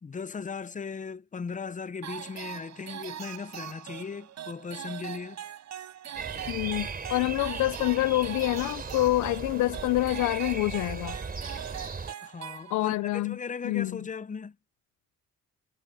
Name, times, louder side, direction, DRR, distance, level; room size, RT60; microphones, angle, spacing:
voice 1, 0.0-5.4 12.2-14.6, left 5 dB, 25° left, 0.8 m, -37 dB
sound 1, 2.0-13.1, right 10 dB, 65° right, 4.3 m, -42 dB
sound 2, 6.1-12.1, right 4 dB, 30° right, 4.3 m, -37 dB
voice 2, 6.5-11.2 12.7-13.4 13.6-14.1, left 18 dB, 80° left, 0.5 m, -27 dB
cardioid pair, 90°, 30 cm